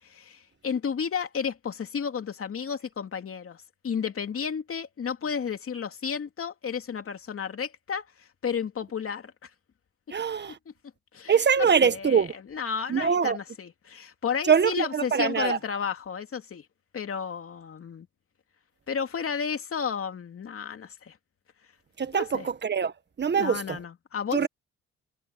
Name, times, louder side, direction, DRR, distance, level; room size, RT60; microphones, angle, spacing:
voice 1, 0.0-9.5 10.5-10.7 11.1-16.7 16.9-18.1 18.9-21.2 22.1-22.5 23.3-24.5, left 6 dB, 45° left, 2.8 m, -32 dB
voice 2, 10.1-10.6 11.3-12.3 12.9-13.4 14.5-15.6 22.0-23.8 24.3-24.5, right 6 dB, 35° right, 1.4 m, -23 dB
cardioid pair, 90°, 30 cm